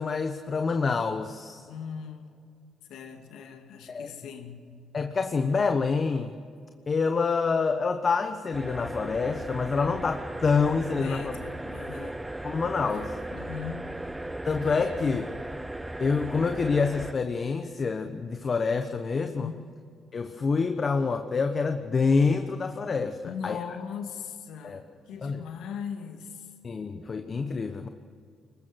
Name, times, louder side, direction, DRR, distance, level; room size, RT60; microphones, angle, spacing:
voice 1, 0.0-1.6 3.9-4.1 4.9-6.3 6.9-11.3 12.4-13.2 14.5-15.3 16.0-19.5 20.1-23.6 24.6-24.8 25.2-25.4 26.6-27.9, left 4 dB, 40° left, 1.2 m, -27 dB
voice 2, 1.7-2.4 2.9-4.6 10.9-12.3 12.9-13.0 13.3-13.9 19.4-19.6 23.2-26.5, left 7 dB, 85° left, 2.4 m, -39 dB
sound 1, 8.5-17.1, right 1 dB, 10° right, 0.7 m, -37 dB
23.0 x 20.5 x 6.4 m
cardioid pair, 90°, 0 cm